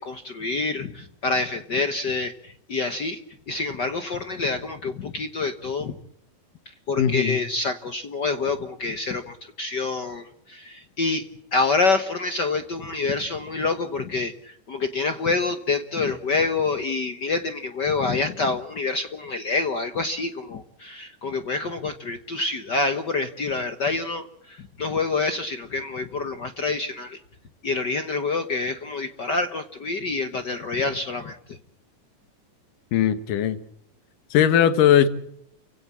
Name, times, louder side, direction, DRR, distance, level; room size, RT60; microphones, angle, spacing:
voice 1, 0.0-3.2 3.5-5.9 6.9-11.2 11.5-27.2 27.6-31.6, left 3 dB, 65° left, 9 dB, 1.0 m, -27 dB
voice 2, 7.0-7.4 32.9-33.6 34.3-35.1, left 9 dB, 85° left, 12 dB, 3.0 m, -19 dB
29.5 x 16.5 x 7.4 m, 0.74 s
omnidirectional pair, 3.7 m